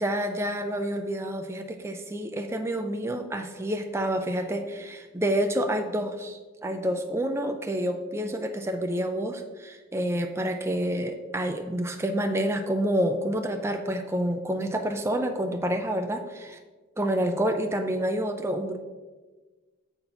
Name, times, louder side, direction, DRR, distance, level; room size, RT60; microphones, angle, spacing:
voice 1, 0.0-16.6 17.0-18.8, right 1 dB, 15° right, 5 dB, 0.4 m, -28 dB
8.1 x 4.1 x 5.7 m, 1.3 s
head